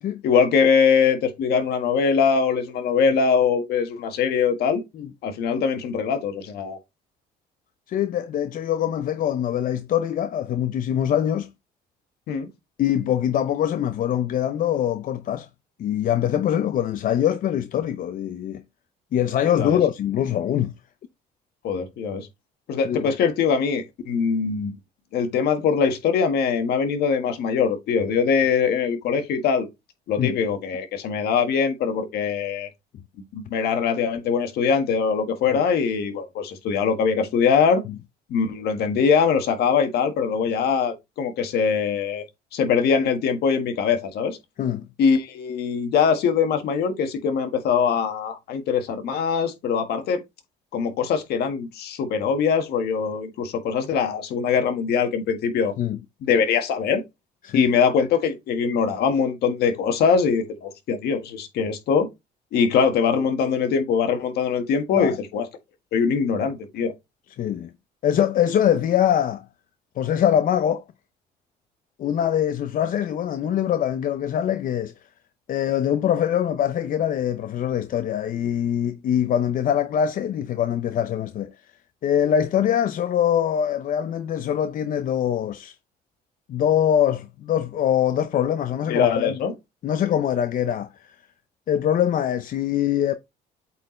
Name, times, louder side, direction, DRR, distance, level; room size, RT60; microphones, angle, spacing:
voice 1, 0.2-4.8 5.2-6.8 12.3-12.5 19.6-19.8 21.6-22.3 22.7-24.7 25.1-29.7 30.1-32.7 33.3-37.8 38.3-42.2 42.5-44.4 45.0-50.2 50.7-55.7 56.2-57.0 57.5-62.1 62.5-65.4 65.9-66.9 88.9-89.5, left 6 dB, 70° left, 1.6 m, -22 dB
voice 2, 7.9-11.5 12.8-15.5 15.8-18.6 19.1-20.7 22.8-23.1 30.2-30.4 37.9-38.0 44.6-44.9 55.8-56.0 57.4-57.7 65.0-65.2 67.4-67.7 68.0-69.4 70.0-70.8 72.0-74.9 75.5-81.5 82.0-85.8 86.5-89.4 89.8-91.1 91.7-93.1, left 10 dB, 55° left, 0.6 m, -23 dB
8.2 x 4.4 x 3.2 m
cardioid pair, 110°, 17 cm